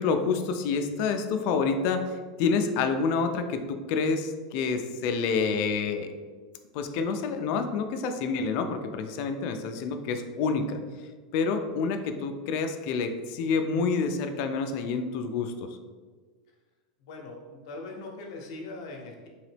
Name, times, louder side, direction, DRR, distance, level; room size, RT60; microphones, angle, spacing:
voice 1, 0.0-2.1 2.4-6.1 6.7-10.8 11.3-15.7, left 5 dB, 40° left, 6 dB, 0.3 m, -28 dB
voice 2, 17.0-19.3, left 2 dB, 60° left, 0 dB, 0.7 m, -41 dB
3.9 x 2.9 x 3.2 m, 1.5 s
supercardioid pair, 165°, 3 cm